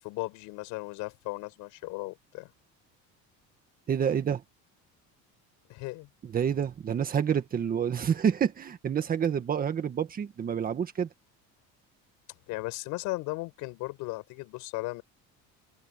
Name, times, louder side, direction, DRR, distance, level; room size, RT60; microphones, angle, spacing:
voice 1, 0.0-2.5 5.7-6.1 12.5-15.0, left 22 dB, 75° left, 7.9 m, -36 dB
voice 2, 3.9-4.4 6.3-11.1, right 8 dB, 25° right, 1.7 m, -28 dB
open air
cardioid pair, 160°, 31 cm